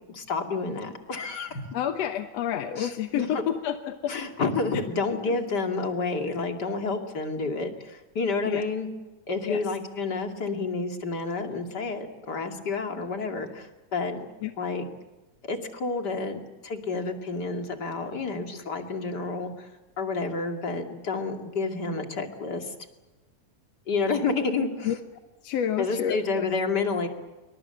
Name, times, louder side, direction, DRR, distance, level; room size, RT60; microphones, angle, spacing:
voice 1, 0.0-1.7 2.8-3.3 4.1-8.9 9.3-14.2 14.6-14.9 15.4-19.7 20.0-22.7 23.9-25.0 25.8-27.1, left 4 dB, 35° left, 4 dB, 2.7 m, -29 dB
voice 2, 1.7-4.2 5.3-5.4 8.5-8.7 9.4-9.6 14.4-14.5 24.8-25.0 25.4-26.5, left 9 dB, 65° left, 7 dB, 2.0 m, -29 dB
27.5 x 24.5 x 6.9 m, 1.1 s
omnidirectional pair, 3.7 m